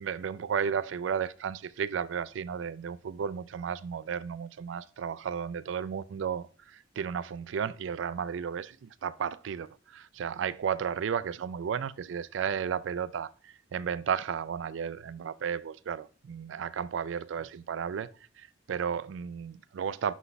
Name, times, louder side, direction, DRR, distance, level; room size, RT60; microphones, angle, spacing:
voice 1, 0.0-20.1, right 7 dB, 85° right, 0.4 m, -33 dB
11.0 x 4.0 x 2.2 m
head